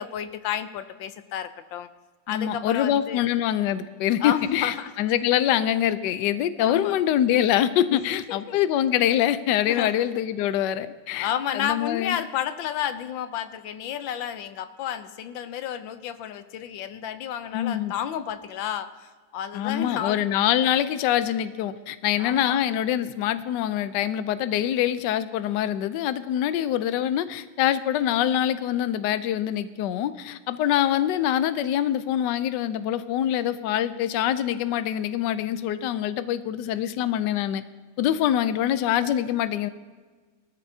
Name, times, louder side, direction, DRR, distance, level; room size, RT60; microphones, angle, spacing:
voice 1, 0.0-1.9 2.3-3.2 4.2-4.9 6.6-7.0 7.9-8.6 9.7-9.9 11.1-20.2 22.2-22.6, left 9 dB, 90° left, 11 dB, 1.5 m, -31 dB
voice 2, 2.3-12.2 17.5-17.9 19.5-37.6 38.0-39.7, left 11 dB, 75° left, 13 dB, 1.2 m, -24 dB
18.5 x 13.5 x 2.7 m, 1.4 s
omnidirectional pair, 2.0 m